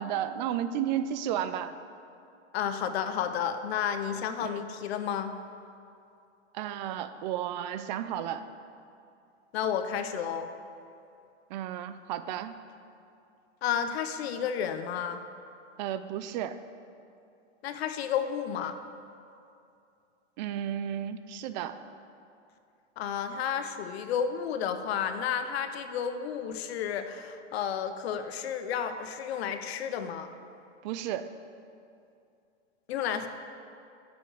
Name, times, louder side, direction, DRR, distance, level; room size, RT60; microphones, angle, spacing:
voice 1, 0.0-1.8 4.4-4.6 6.5-8.4 11.5-12.5 15.8-16.6 20.4-21.8 30.8-31.3, right 10 dB, 40° right, 12 dB, 0.5 m, -33 dB
voice 2, 2.5-5.3 9.5-10.5 13.6-15.2 17.6-18.8 23.0-30.3 32.9-33.3, left 8 dB, 60° left, 8 dB, 0.9 m, -31 dB
7.8 x 7.0 x 7.9 m, 2.5 s
supercardioid pair, 150°, 35 cm